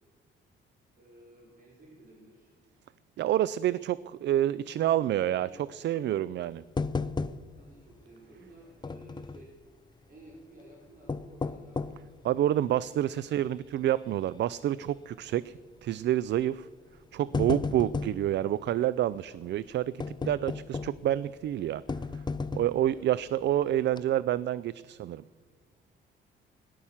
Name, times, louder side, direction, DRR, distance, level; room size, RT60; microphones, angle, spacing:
voice 1, 0.9-2.6 4.7-6.3 7.2-9.5 10.1-12.1 17.6-18.0 22.9-23.1, right 1 dB, 45° right, -4 dB, 4.7 m, -54 dB
voice 2, 3.2-6.6 12.2-15.5 15.8-16.7 17.1-21.8 22.5-25.2, right 12 dB, 65° right, 19 dB, 0.4 m, -28 dB
sound 1, 6.8-7.7 8.0-8.1 8.8-9.5 10.9-12.1 12.7-12.8 13.4-13.7 13.9-14.0 15.2-15.5 16.4-16.5 17.0-18.3 20.0-21.1 21.9-22.9 23.4-23.5 23.9-24.0, left 4 dB, 20° left, 0.7 m, -33 dB
17.5 x 11.5 x 7.3 m, 1.5 s
cardioid pair, 90°, 20 cm